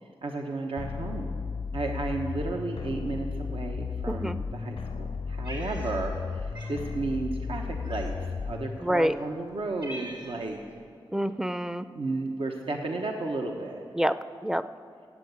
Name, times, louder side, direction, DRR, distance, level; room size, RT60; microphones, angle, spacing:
voice 1, 0.0-1.4 1.7-8.1 8.5-10.6 11.9-13.8, right 3 dB, 80° right, 2 dB, 1.1 m, -33 dB
sound 1, 0.8-8.8, left 5 dB, 75° left, 0.5 m, -34 dB
voice 2, 4.1-4.4 8.8-9.2 11.1-11.9 13.9-14.7, equal, 5° right, 13 dB, 0.4 m, -27 dB
Cat, 5.4-6.3 6.5-6.8 7.8-8.4 9.1-9.2 9.5-10.5, right 1 dB, 60° right, 3.6 m, -43 dB
16.0 x 8.3 x 8.1 m, 2.3 s
wide cardioid pair, 85°, 9 cm